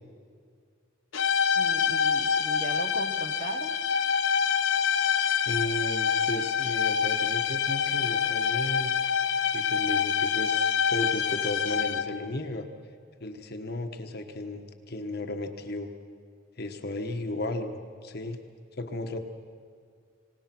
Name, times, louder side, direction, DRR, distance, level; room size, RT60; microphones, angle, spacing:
sound 1, 1.1-12.2, left 7 dB, 65° left, 0.8 m, -26 dB
voice 1, 1.5-3.8, right 1 dB, 35° right, 7 dB, 1.2 m, -38 dB
voice 2, 5.4-8.9 9.5-12.7 13.2-15.9 16.6-18.4 18.8-19.2, left 1 dB, 50° left, 6 dB, 1.3 m, -34 dB
27.0 x 18.5 x 6.1 m, 2.1 s
head